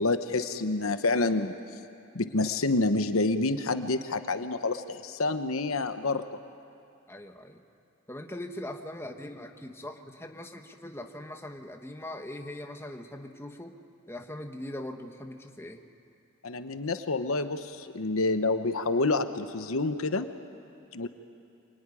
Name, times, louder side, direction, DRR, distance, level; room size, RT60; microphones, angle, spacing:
voice 1, 0.0-1.6 2.1-6.2 16.4-20.3 20.9-21.1, left 3 dB, 70° left, 9 dB, 1.0 m, -28 dB
voice 2, 7.1-7.6 8.1-13.8 14.1-15.8, left 1 dB, 10° left, 4 dB, 1.4 m, -41 dB
26.0 x 22.0 x 9.9 m, 2.6 s
head